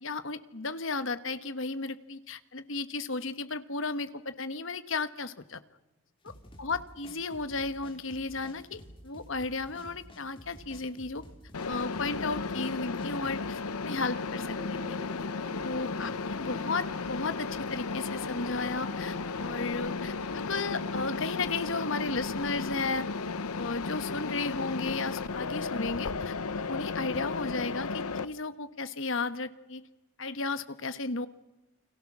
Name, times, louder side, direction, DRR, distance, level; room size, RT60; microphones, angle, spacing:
voice 1, 0.0-5.6 6.2-6.3 6.6-11.2 11.7-15.0 15.6-23.1 23.5-29.9 30.2-31.3, left 3 dB, 60° left, 12 dB, 1.2 m, -34 dB
sound 1, 6.3-13.5, equal, 25° left, 3.5 m, -51 dB
Mechanisms, 11.5-28.2, left 4 dB, 90° left, 0.8 m, -34 dB
sound 2, 13.6-23.1, equal, ahead, 1.6 m, -51 dB
29.5 x 23.0 x 6.2 m, 1.1 s
head